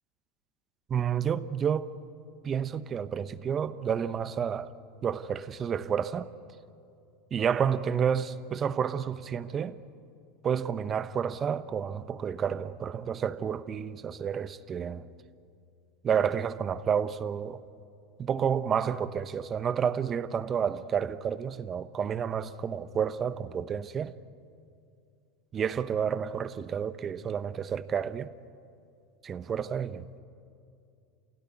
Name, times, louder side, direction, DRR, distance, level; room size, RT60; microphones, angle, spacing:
voice 1, 0.9-1.9 2.4-4.7 5.0-6.3 7.3-9.8 10.4-15.1 16.0-17.6 18.2-24.1 25.5-28.3 29.2-30.2, right 7 dB, 35° right, 1.0 m, -30 dB
28.0 x 17.0 x 9.7 m
hypercardioid pair, 95°, 0 cm